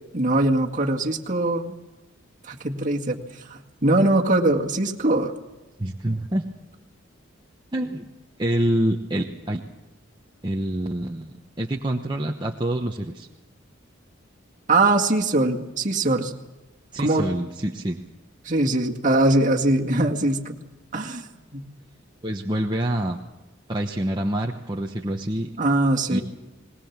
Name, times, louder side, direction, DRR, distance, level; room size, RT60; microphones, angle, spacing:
voice 1, 0.1-1.7 2.4-3.2 3.5-5.3 14.7-16.3 17.0-17.3 18.5-20.6 20.9-21.6 25.6-26.2, right 2 dB, 40° right, 1 dB, 2.0 m, -22 dB
voice 2, 5.8-6.4 7.7-8.1 8.4-9.6 10.4-13.3 16.9-18.0 22.2-23.2 23.7-25.5 26.1-26.2, right 1 dB, 20° right, 0 dB, 1.0 m, -26 dB
20.5 x 20.0 x 7.3 m, 1.1 s
head